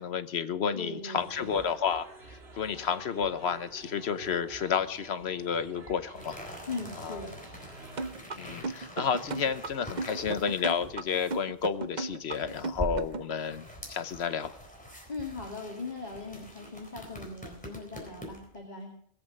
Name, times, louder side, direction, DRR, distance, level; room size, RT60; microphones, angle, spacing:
voice 1, 0.0-6.6 7.0-7.2 8.4-14.5, left 7 dB, 85° left, 12 dB, 1.2 m, -31 dB
voice 2, 0.7-1.6 6.7-7.4 15.1-18.9, left 3 dB, 45° left, -2 dB, 2.5 m, -39 dB
sound 1, 1.1-8.2, right 3 dB, 80° right, 2.2 m, -49 dB
sound 2, 6.1-18.6, equal, 5° left, 4.0 m, -44 dB
sound 3, 8.0-13.3, right 3 dB, 50° right, 0.9 m, -35 dB
20.5 x 8.0 x 6.4 m, 0.67 s
omnidirectional pair, 1.1 m